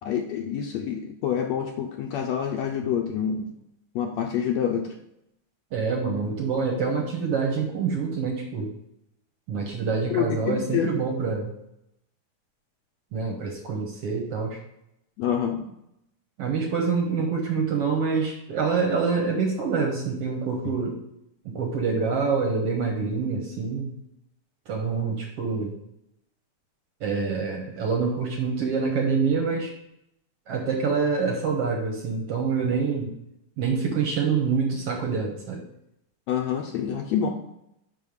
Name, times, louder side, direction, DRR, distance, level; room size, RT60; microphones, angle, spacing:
voice 1, 0.0-3.5 3.9-4.9 10.1-10.9 15.2-15.6 36.3-37.3, left 8 dB, 75° left, 3 dB, 1.7 m, -27 dB
voice 2, 5.7-8.7 9.5-11.5 13.1-14.6 16.4-21.0 21.4-23.9 24.7-25.7 27.0-29.7 30.5-33.2 33.6-35.6, right 5 dB, 60° right, 1 dB, 1.7 m, -26 dB
5.6 x 5.4 x 6.4 m, 0.81 s
omnidirectional pair, 3.6 m